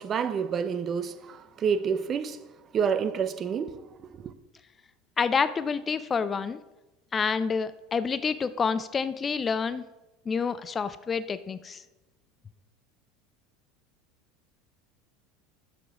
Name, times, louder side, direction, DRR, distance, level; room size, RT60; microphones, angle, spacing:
voice 1, 0.0-2.4 2.7-4.3, right 6 dB, 35° right, 0.6 m, -29 dB
voice 2, 5.2-6.6 7.1-9.8 10.3-11.8, left 5 dB, 25° left, 0.4 m, -28 dB
6.8 x 6.0 x 4.8 m
hypercardioid pair, 80°, 0 cm